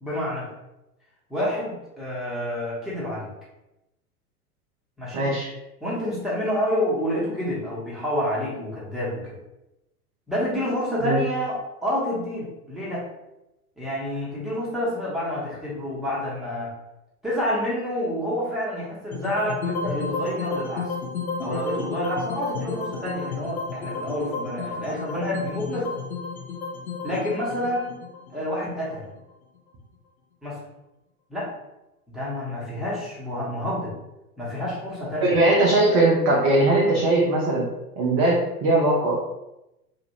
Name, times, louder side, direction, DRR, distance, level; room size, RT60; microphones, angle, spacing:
voice 1, 0.0-0.5 1.3-3.3 5.0-5.3 5.8-9.4 10.3-13.1 13.8-16.7 17.2-20.9 21.4-26.0 27.0-27.9 28.3-29.0 30.4-30.6 31.3-31.5 32.1-33.9 34.4-35.3, left 1 dB, ahead, -8 dB, 0.9 m, -28 dB
voice 2, 5.1-5.5 11.0-11.2 35.2-37.6 38.0-39.3, right 2 dB, 25° right, -4 dB, 0.5 m, -20 dB
sound 1, 19.1-29.3, left 4 dB, 65° left, 0.7 m, -32 dB
2.9 x 2.4 x 2.8 m, 0.93 s
figure-of-eight pair, 95°, 45 cm